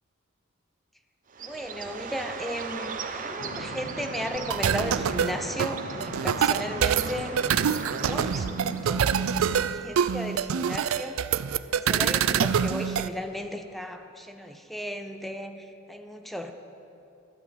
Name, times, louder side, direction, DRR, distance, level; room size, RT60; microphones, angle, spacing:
Bird, 1.3-9.0, right 5 dB, 40° right, 0.8 m, -38 dB
voice 1, 1.4-7.4 7.9-11.3 11.7-16.5, equal, ahead, 6 dB, 0.7 m, -35 dB
sound 1, 3.4-9.7, left 1 dB, 65° left, 0.8 m, -41 dB
sound 2, 4.4-13.1, right 8 dB, 80° right, 0.4 m, -25 dB
12.0 x 8.6 x 9.2 m, 2.7 s
head